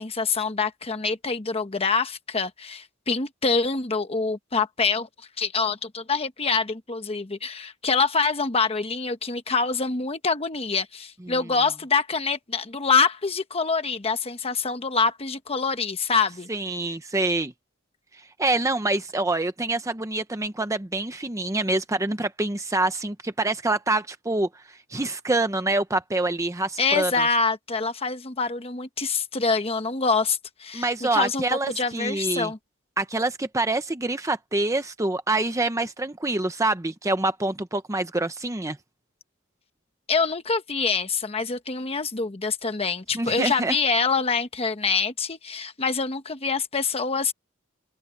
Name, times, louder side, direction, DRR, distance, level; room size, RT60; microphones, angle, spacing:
voice 1, 0.0-5.1 5.4-16.5 26.8-32.6 40.1-47.3, left 4 dB, 30° left, 1.1 m, -25 dB
voice 2, 16.5-17.5 18.4-24.5 24.9-27.3 30.7-32.5 33.0-38.8 43.1-43.8, right 2 dB, 15° right, 0.8 m, -26 dB
open air
head